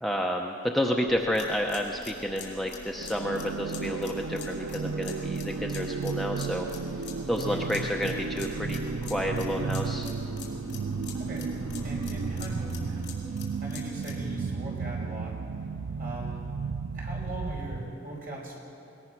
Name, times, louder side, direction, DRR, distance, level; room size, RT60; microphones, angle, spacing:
voice 1, 0.0-6.7 6.9-10.1, equal, ahead, 0 dB, 0.8 m, -30 dB
sound 1, 1.1-15.1, left 1 dB, 20° right, 2.4 m, -44 dB
sound 2, 1.3-14.2, left 8 dB, 55° left, 4.5 m, -46 dB
sound 3, 3.0-18.0, right 5 dB, 70° right, 0.5 m, -34 dB
voice 2, 11.8-13.0 13.6-15.4 16.0-16.5 16.9-18.6, right 1 dB, 45° right, -3 dB, 5.5 m, -39 dB
22.0 x 19.5 x 6.0 m, 2.9 s
head